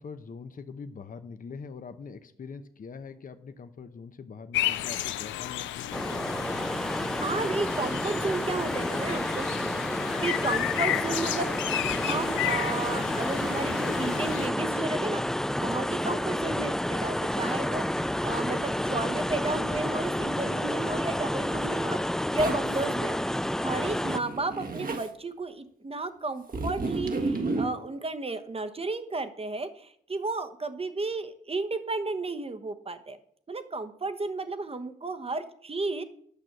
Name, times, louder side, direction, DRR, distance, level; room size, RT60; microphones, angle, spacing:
voice 1, 0.0-6.3, left 5 dB, 45° left, 9 dB, 0.8 m, -43 dB
sound 1, 4.5-14.5, left 13 dB, 85° left, 0.4 m, -33 dB
sound 2, 5.9-24.2, left 1 dB, 5° left, 0.3 m, -30 dB
voice 2, 6.8-9.5 10.2-11.5 11.9-15.2 15.6-23.2 23.6-33.2 33.5-36.0, right 3 dB, 30° right, 10 dB, 1.1 m, -33 dB
Zipper (clothing), 22.4-22.8 24.0-25.1 26.5-27.7, right 3 dB, 50° right, 1.5 m, -31 dB
8.5 x 6.1 x 6.6 m, 0.66 s
cardioid pair, 60°, 19 cm